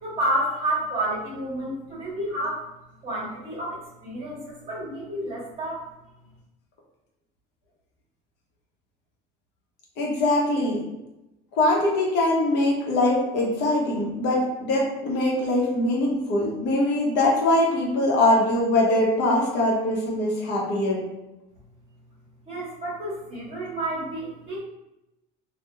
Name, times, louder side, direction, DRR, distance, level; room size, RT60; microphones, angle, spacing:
voice 1, 0.0-2.6 3.0-5.8 22.5-24.6, right 1 dB, 35° right, -9 dB, 1.2 m, -30 dB
voice 2, 10.0-10.8 11.6-21.0, left 1 dB, 60° left, -2 dB, 0.9 m, -22 dB
3.0 x 2.3 x 2.3 m, 0.92 s
cardioid pair, 130°, 20 cm